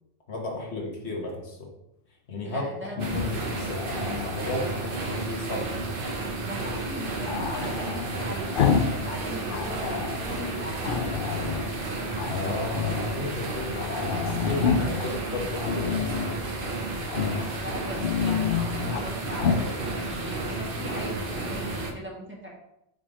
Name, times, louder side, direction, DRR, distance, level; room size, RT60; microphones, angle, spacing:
voice 1, 0.3-1.7 2.3-2.7 3.1-5.7 12.2-13.9 14.2-16.3, left 2 dB, 80° left, -1 dB, 1.6 m, -34 dB
voice 2, 2.4-3.0 6.4-11.2 14.2-15.6 17.1-22.5, equal, 10° right, -4 dB, 1.3 m, -39 dB
Growling, 2.9-4.9 7.3-9.0 9.3-10.2 10.8-11.7 12.1-13.1 13.5-13.6 13.8-15.1 15.6-16.4 17.1-17.5 17.8-19.1 19.4-19.7, left 6 dB, 60° left, 0.7 m, -29 dB
sound 1, 3.0-21.9, right 2 dB, 55° right, 1.0 m, -32 dB
5.3 x 3.8 x 4.9 m, 0.84 s
omnidirectional pair, 1.1 m